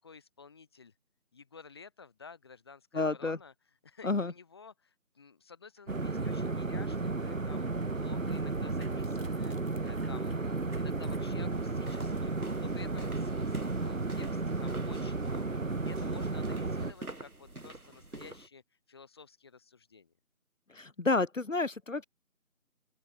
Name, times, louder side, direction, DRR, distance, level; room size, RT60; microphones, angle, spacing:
voice 1, 0.0-0.9 1.3-3.5 3.8-12.3 12.6-18.6 18.9-20.1, left 5 dB, 15° left, 6.3 m, -53 dB
voice 2, 2.9-3.4 4.0-4.3 20.7-22.0, left 3 dB, 60° left, 1.3 m, -30 dB
sound 1, 5.8-12.0 12.5-12.7, right 2 dB, 40° right, 6.0 m, -61 dB
sound 2, 5.9-16.9, right 3 dB, 65° right, 1.6 m, -33 dB
sound 3, 11.5-18.5, right 2 dB, 90° right, 3.9 m, -47 dB
open air
figure-of-eight pair, 170°, 43 cm